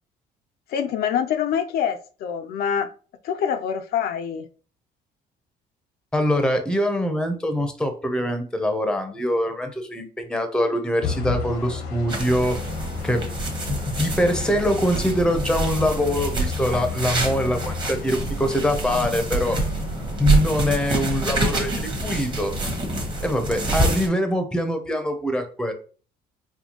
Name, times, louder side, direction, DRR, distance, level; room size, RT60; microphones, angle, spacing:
voice 1, 0.7-2.9 3.2-4.5, left 8 dB, 65° left, 0.4 m, -25 dB
voice 2, 6.1-12.6 13.0-13.2 13.7-19.6 20.2-22.5 23.2-25.7, left 1 dB, 5° left, 0.6 m, -23 dB
sound 1, 11.0-23.3, left 5 dB, 80° left, 0.8 m, -34 dB
sound 2, 12.1-24.1, right 2 dB, 25° right, 1.0 m, -27 dB
4.2 x 2.2 x 2.8 m
cardioid pair, 110°, 17 cm